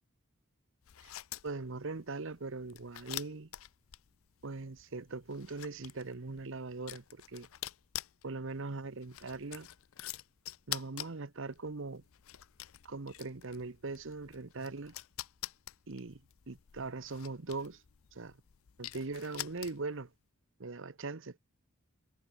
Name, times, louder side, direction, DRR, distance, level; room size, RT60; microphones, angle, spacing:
sound 1, 0.8-20.1, left 14 dB, 70° left, 0.5 m, -47 dB
voice 1, 1.4-3.5 4.4-7.5 8.2-9.7 10.7-12.0 12.8-14.9 15.9-16.2 16.5-17.8 18.1-18.4 18.8-20.1 20.6-21.4, right 3 dB, 60° right, 1.0 m, -41 dB
head